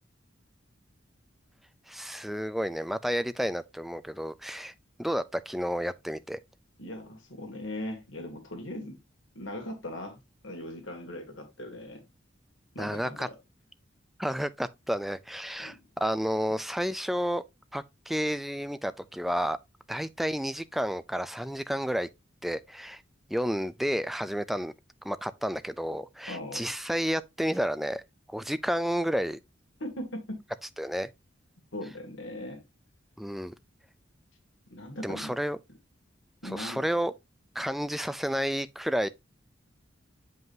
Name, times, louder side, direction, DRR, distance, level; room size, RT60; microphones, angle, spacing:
voice 1, 1.9-4.7 5.0-6.4 12.8-13.3 14.2-17.4 17.7-19.6 19.9-22.1 22.4-23.0 23.3-24.7 25.0-28.0 28.3-29.4 30.8-31.1 33.2-33.5 35.0-35.6 36.4-37.1 37.6-39.1, equal, ahead, 0.3 m, -31 dB
voice 2, 6.8-9.0 9.3-12.0 12.7-13.3 15.6-15.8 26.3-26.6 29.8-30.4 31.7-32.7 34.7-35.3 36.4-36.8, left 1 dB, 80° left, 2.4 m, -39 dB
7.6 x 5.4 x 2.7 m
head